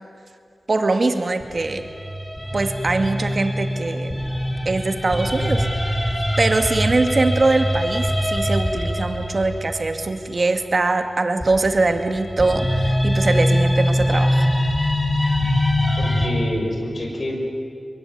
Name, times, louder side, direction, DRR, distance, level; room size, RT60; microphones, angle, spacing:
voice 1, 0.7-1.9 2.5-4.1 4.7-5.7 6.4-14.5, right 3 dB, 55° right, 7 dB, 2.2 m, -22 dB
sound 1, 1.4-10.5 11.4-16.3, equal, 10° left, 6.6 m, -23 dB
voice 2, 16.0-17.4, left 1 dB, 60° left, 1 dB, 6.5 m, -27 dB
22.5 x 22.5 x 9.5 m, 2.3 s
cardioid pair, 45°, 0 cm